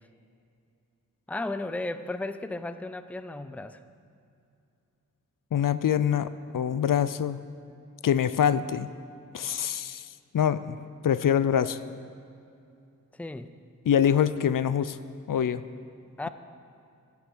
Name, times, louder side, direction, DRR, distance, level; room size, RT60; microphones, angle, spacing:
voice 1, 1.3-3.8 13.1-13.5 16.2-16.3, left 2 dB, 5° left, 11 dB, 0.5 m, -34 dB
voice 2, 5.5-6.3 6.5-7.4 8.0-8.9 9.3-10.1 10.3-10.8 11.0-11.8 13.9-15.0 15.3-15.6, left 9 dB, 75° left, 14 dB, 0.5 m, -24 dB
15.5 x 8.2 x 6.1 m, 2.5 s
wide cardioid pair, 80°, 33 cm